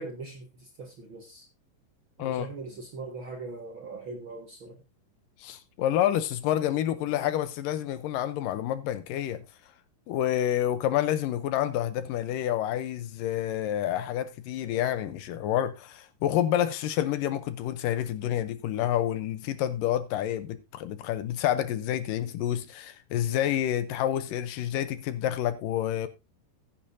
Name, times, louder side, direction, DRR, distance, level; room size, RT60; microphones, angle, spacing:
voice 1, 0.0-1.5 2.2-4.8, right 3 dB, 50° right, 1.5 m, -41 dB
voice 2, 5.4-9.5 10.1-26.1, left 11 dB, 75° left, 2.2 m, -28 dB
15.5 x 8.8 x 2.6 m
omnidirectional pair, 4.2 m